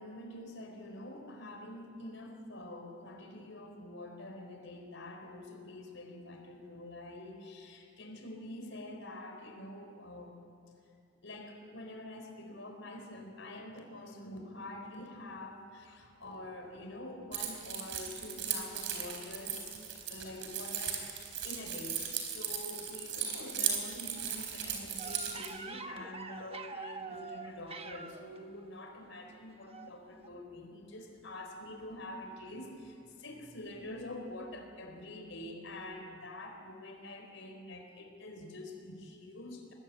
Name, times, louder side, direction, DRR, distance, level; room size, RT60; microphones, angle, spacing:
voice 1, 0.0-10.4 11.2-19.7 20.1-22.0 22.3-39.7, left 1 dB, 70° left, 3 dB, 4.4 m, -46 dB
Keys jangling, 17.3-25.5, right 8 dB, 65° right, 4.1 m, -37 dB
sound 1, 25.0-28.4 29.7-29.9 30.2-30.3, right 4 dB, 30° right, 1.0 m, -45 dB
24.0 x 19.5 x 8.6 m, 2.6 s
head